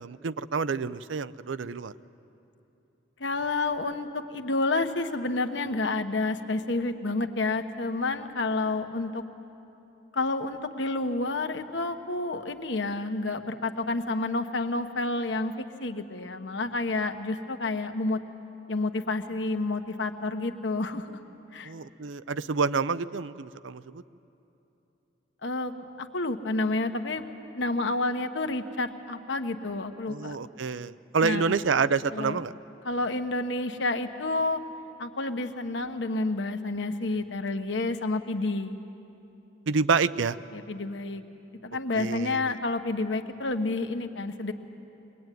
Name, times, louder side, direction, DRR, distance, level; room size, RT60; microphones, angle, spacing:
voice 1, 0.0-1.9 21.6-24.0 30.1-32.5 39.7-40.4 42.0-42.5, right 5 dB, 85° right, 15 dB, 0.6 m, -28 dB
voice 2, 3.2-9.2 10.1-18.2 18.7-21.2 21.5-21.7 25.4-27.2 27.5-30.4 31.2-31.5 32.1-32.4 32.8-34.6 35.0-38.8 40.5-41.2 41.6-44.5, left 2 dB, 70° left, 7 dB, 1.2 m, -29 dB
22.5 x 21.0 x 9.3 m, 2.9 s
head